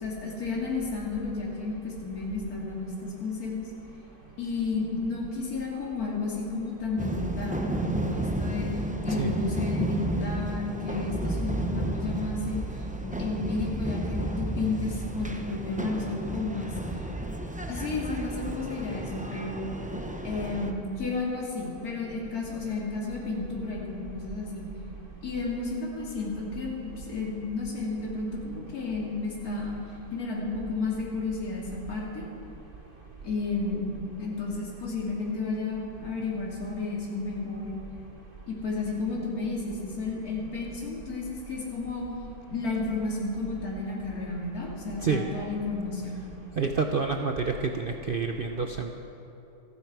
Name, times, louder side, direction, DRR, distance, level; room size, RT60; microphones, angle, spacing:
voice 1, 0.0-3.7 4.4-8.7 9.0-16.7 17.7-19.7 20.2-24.6 25.2-29.8 30.1-32.2 33.2-37.7 38.5-42.0 42.5-46.1, left 3 dB, 70° left, -4 dB, 2.9 m, -32 dB
sound 1, 7.0-20.7, right 1 dB, 10° right, 0.5 m, -32 dB
voice 2, 46.6-48.9, right 4 dB, 50° right, 4 dB, 0.7 m, -28 dB
27.5 x 9.6 x 4.7 m, 2.9 s
omnidirectional pair, 1.6 m